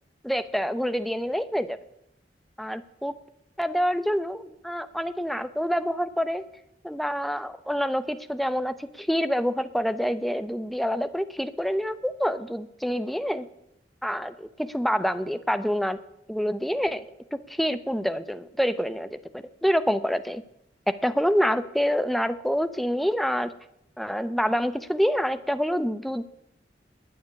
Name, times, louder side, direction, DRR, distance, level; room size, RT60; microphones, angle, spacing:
voice 1, 0.2-1.8 2.6-3.1 3.6-6.4 6.8-13.5 14.0-16.0 16.3-17.0 17.3-19.2 19.6-20.4 20.9-23.5 24.0-26.2, equal, ahead, 11 dB, 0.7 m, -27 dB
19.5 x 7.2 x 9.7 m, 0.81 s
head